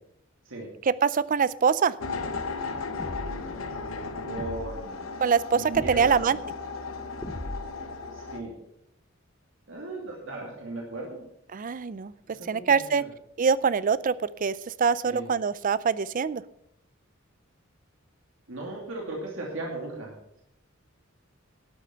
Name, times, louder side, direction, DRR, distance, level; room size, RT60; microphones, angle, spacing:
voice 1, 0.9-1.9 5.2-6.4 11.5-12.1 12.5-13.0 13.4-14.1 14.4-16.4, right 6 dB, 40° right, 18 dB, 0.4 m, -24 dB
sound 1, 2.0-8.4, left 4 dB, 85° left, 1.2 m, -36 dB
sound 2, 3.0-3.6 4.4-4.8 5.7-6.2 7.2-7.9, left 1 dB, 20° left, 0.6 m, -38 dB
voice 2, 4.2-5.1 5.5-6.4 8.1-8.6 9.7-11.2 12.3-13.1 15.0-15.3 18.5-20.4, right 2 dB, 70° right, -1 dB, 2.6 m, -37 dB
12.5 x 8.5 x 5.8 m, 0.76 s
head